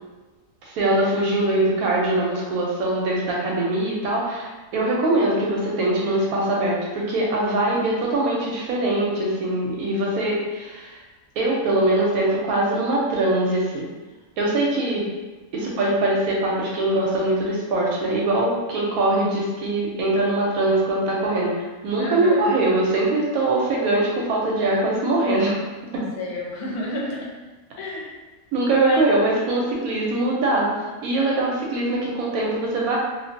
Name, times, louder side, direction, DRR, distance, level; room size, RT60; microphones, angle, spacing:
voice 1, 0.6-10.9 11.4-13.9 14.4-15.0 15.5-25.6 25.9-26.0 28.5-30.7 31.0-33.0, right 2 dB, 75° right, -3 dB, 1.0 m, -22 dB
voice 2, 15.6-16.1 22.0-22.5 26.2-27.3 27.8-28.1 28.7-29.1, left 2 dB, 80° left, -3 dB, 1.2 m, -30 dB
2.5 x 2.5 x 2.5 m, 1.2 s
omnidirectional pair, 1.6 m